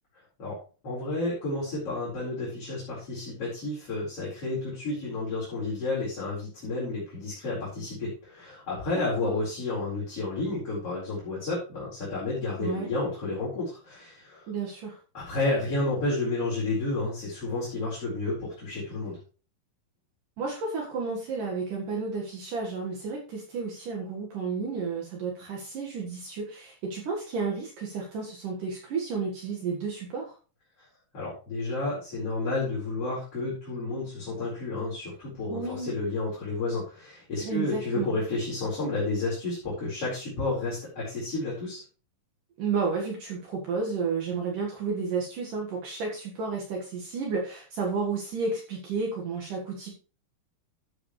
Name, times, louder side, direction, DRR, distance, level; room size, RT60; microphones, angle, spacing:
voice 1, 0.8-14.5 15.1-19.2 31.1-41.8, left 2 dB, 40° left, -8 dB, 5.3 m, -31 dB
voice 2, 9.0-9.3 12.6-12.9 14.5-15.0 20.4-30.3 35.5-35.9 37.4-38.2 42.6-49.9, right 4 dB, 60° right, -1 dB, 3.1 m, -32 dB
12.5 x 8.5 x 3.2 m, 0.35 s
omnidirectional pair, 4.4 m